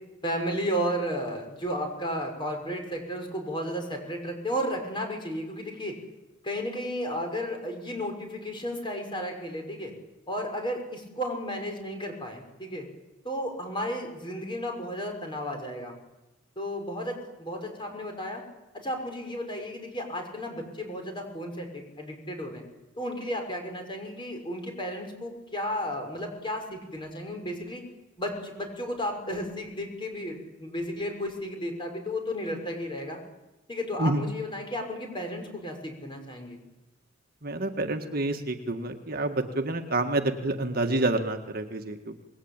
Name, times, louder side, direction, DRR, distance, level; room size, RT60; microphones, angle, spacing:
voice 1, 0.2-6.0 6.4-9.9 10.3-12.8 13.2-16.0 16.6-18.4 18.7-22.6 23.0-27.8 28.2-33.2 33.7-36.6, equal, 25° left, 3 dB, 6.0 m, -33 dB
voice 2, 37.4-42.2, right 2 dB, 50° right, 5 dB, 1.8 m, -28 dB
27.0 x 21.0 x 9.0 m, 1.0 s
head